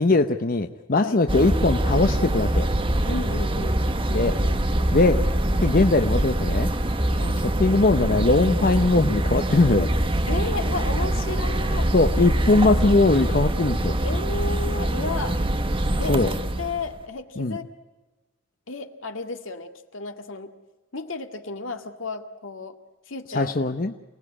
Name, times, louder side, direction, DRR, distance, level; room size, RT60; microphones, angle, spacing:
voice 1, 0.0-2.7 4.1-4.4 4.9-5.3 5.6-6.7 7.4-9.9 11.9-14.0 16.1-16.3 17.4-17.6 23.3-23.9, left 2 dB, 45° left, 7 dB, 0.8 m, -20 dB
sound 1, 1.3-17.0, right 1 dB, 25° right, 1.2 m, -24 dB
voice 2, 3.1-3.8 7.1-7.4 10.3-11.9 14.0-15.4 16.0-16.2 16.6-17.6 18.7-20.5 20.9-22.8 23.1-23.6, left 3 dB, 75° left, 6 dB, 2.0 m, -32 dB
28.5 x 19.0 x 9.8 m, 1.2 s
head